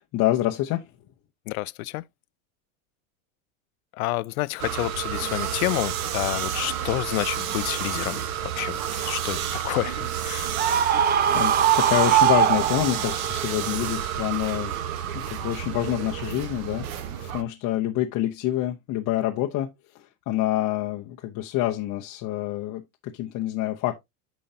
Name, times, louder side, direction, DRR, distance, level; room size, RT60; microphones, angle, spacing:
voice 1, 0.1-0.8 10.8-14.7 15.1-16.9 17.3-19.7 19.9-23.9, left 13 dB, 45° left, 0.9 m, -27 dB
voice 2, 1.5-2.0 3.9-9.4 9.6-10.6, left 20 dB, 85° left, 0.6 m, -29 dB
sound 1, 4.6-17.4, right 10 dB, 85° right, 1.3 m, -30 dB
Screaming, 10.6-13.3, right 9 dB, 25° right, 0.5 m, -21 dB
8.8 x 5.5 x 2.7 m
supercardioid pair, 130°, 42 cm